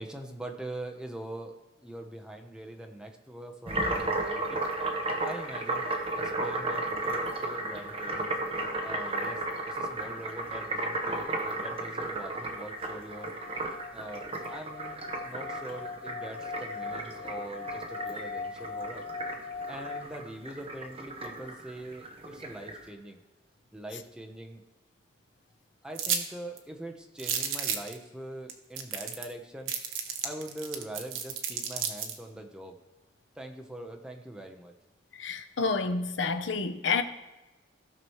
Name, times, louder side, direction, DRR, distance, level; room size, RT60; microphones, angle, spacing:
voice 1, 0.0-4.6 5.2-5.9 6.2-8.3 8.8-13.3 13.9-19.0 19.7-23.2 23.7-24.6 25.8-29.7 30.2-32.8 33.4-34.7, right 1 dB, 5° right, 0.9 m, -43 dB
sound 1, 3.7-22.8, right 2 dB, 30° right, 1.1 m, -34 dB
sound 2, 11.6-20.0, left 4 dB, 20° left, 2.1 m, -41 dB
sound 3, 26.0-26.2 26.6-26.7 27.2-27.9 28.5-28.6 28.8-29.3 29.7-32.2, right 8 dB, 85° right, 1.1 m, -32 dB
voice 2, 35.2-37.0, left 4 dB, 65° left, 0.7 m, -29 dB
16.0 x 6.1 x 3.1 m
head